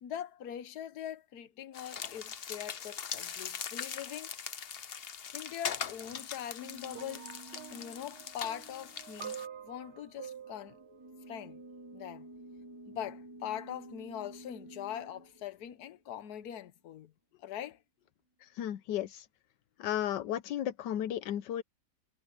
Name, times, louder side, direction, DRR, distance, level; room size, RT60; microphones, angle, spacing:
voice 1, 0.0-4.3 5.3-7.3 7.7-10.8 11.3-11.6 11.9-12.3 12.9-17.1 17.4-17.8, left 10 dB, 65° left, 1.5 m, -42 dB
sound 1, 1.7-9.5, left 7 dB, 50° left, 0.8 m, -41 dB
sound 2, 6.6-16.4, right 1 dB, 15° right, 2.7 m, -52 dB
sound 3, 6.9-12.1 13.0-13.1, right 9 dB, 70° right, 0.5 m, -48 dB
voice 2, 18.4-19.3 19.8-21.6, left 11 dB, 85° left, 1.4 m, -34 dB
omnidirectional pair, 1.8 m